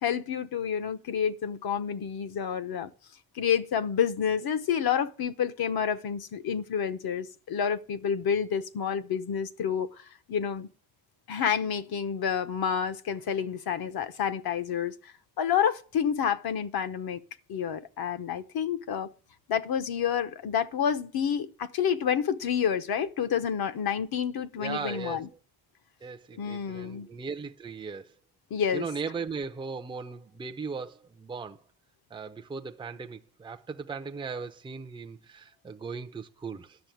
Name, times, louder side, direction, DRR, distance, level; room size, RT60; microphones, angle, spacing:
voice 1, 0.0-2.9 3.3-9.9 10.3-10.7 11.3-17.2 17.5-19.1 19.5-25.3 26.4-27.1 28.5-28.9, left 8 dB, 50° left, 0.9 m, -29 dB
voice 2, 24.6-25.3 26.0-28.1 28.7-31.6 32.1-36.8, right 5 dB, 10° right, 0.5 m, -38 dB
11.5 x 6.5 x 9.2 m
cardioid pair, 145°, 46 cm